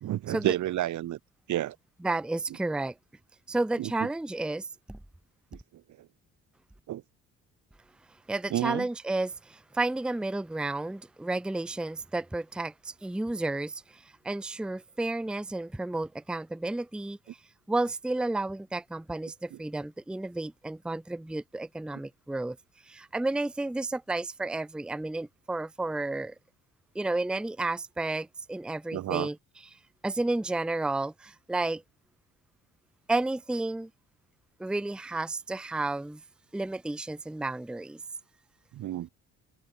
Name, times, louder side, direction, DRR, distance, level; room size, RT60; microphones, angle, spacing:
voice 1, 0.0-1.2 1.5-1.8 3.8-4.1 5.5-5.6 6.0-6.1 6.9-7.0 8.5-8.9 19.5-19.6 28.9-29.3 38.7-39.1, right 13 dB, 75° right, 1.5 m, -30 dB
voice 2, 2.0-2.9 3.5-5.0 8.3-17.4 17.7-22.6 22.9-26.3 26.9-29.4 30.0-31.8 33.1-33.9 34.6-36.2 36.5-38.0, right 2 dB, 5° right, 0.6 m, -32 dB
cardioid pair, 90°, 30 cm